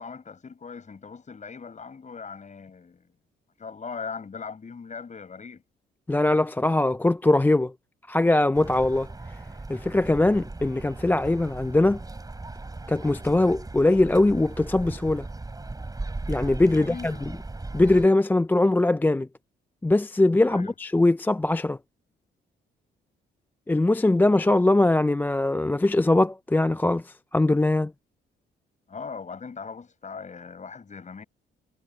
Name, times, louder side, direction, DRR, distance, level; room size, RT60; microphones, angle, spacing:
voice 1, 0.0-3.1 3.6-5.6 16.7-17.2 20.4-20.7 28.9-31.2, left 5 dB, 35° left, 7.1 m, -39 dB
voice 2, 6.1-7.7 8.1-9.1 9.7-12.0 12.9-15.3 16.3-17.3 17.7-19.3 19.8-21.8 23.7-27.9, left 2 dB, 10° left, 0.4 m, -21 dB
sound 1, 8.5-18.1, right 2 dB, 20° right, 6.0 m, -37 dB
cardioid pair, 90°, 20 cm